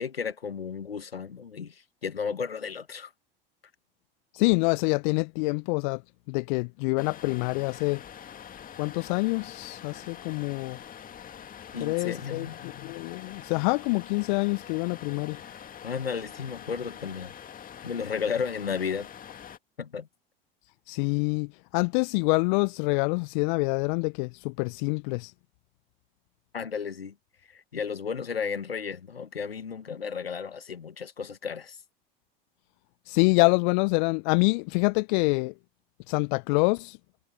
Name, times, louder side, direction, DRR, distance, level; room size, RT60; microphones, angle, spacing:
voice 1, 0.0-3.1 11.7-12.6 15.8-17.3 17.8-19.1 19.8-20.1 26.5-27.1 27.5-31.8, left 6 dB, 85° left, 1.6 m, -33 dB
voice 2, 4.3-6.0 6.3-8.0 8.8-10.8 11.8-15.4 20.9-25.3 33.1-35.5 36.1-37.0, left 31 dB, 55° left, 1.1 m, -26 dB
sound 1, 7.0-19.6, left 9 dB, 30° left, 2.4 m, -45 dB
figure-of-eight pair, 80°, 29 cm